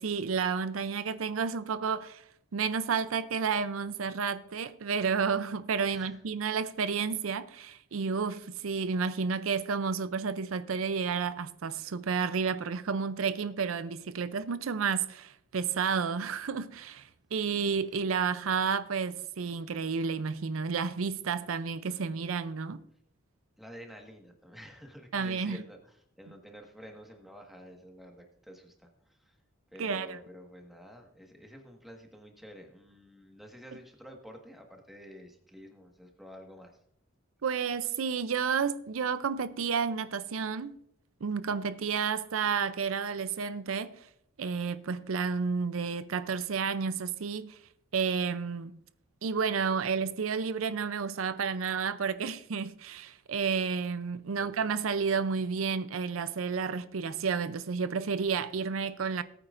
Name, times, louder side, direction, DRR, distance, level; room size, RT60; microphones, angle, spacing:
voice 1, 0.0-2.2 2.5-22.8 25.1-25.6 29.8-30.2 37.4-40.8 41.2-44.0 44.4-47.6 47.9-48.8 49.2-59.2, right 5 dB, 85° right, 0.5 m, -31 dB
voice 2, 23.6-29.3 29.7-36.8 54.4-54.8, equal, ahead, 1.6 m, -50 dB
19.0 x 9.1 x 2.5 m
head